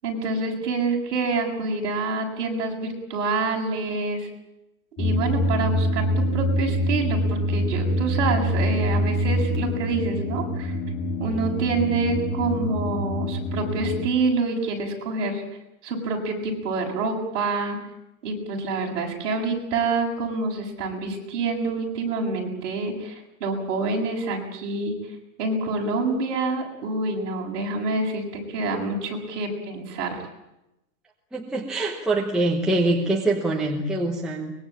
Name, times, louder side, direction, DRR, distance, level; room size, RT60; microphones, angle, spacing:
voice 1, 0.0-4.3 5.0-10.7 11.2-15.4 15.8-17.8 18.2-25.0 25.4-30.2, right 3 dB, 50° right, 0 dB, 7.6 m, -27 dB
sound 1, 5.0-14.1, equal, 20° left, 2.1 m, -25 dB
voice 2, 31.3-34.5, right 2 dB, ahead, -2 dB, 0.9 m, -24 dB
23.5 x 22.0 x 8.8 m, 0.88 s
supercardioid pair, 180°, 47 cm